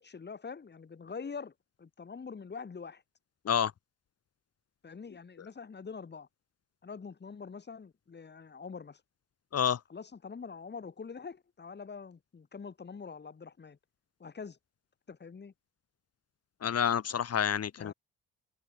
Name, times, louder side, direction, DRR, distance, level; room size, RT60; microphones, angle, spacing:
voice 1, 0.0-3.0 4.8-6.3 6.8-9.0 9.9-13.8 14.2-14.6 15.1-15.5 17.8-17.9, left 5 dB, 35° left, 5.2 m, -44 dB
voice 2, 16.6-17.9, left 8 dB, 55° left, 4.1 m, -28 dB
cardioid pair, 90°, 30 cm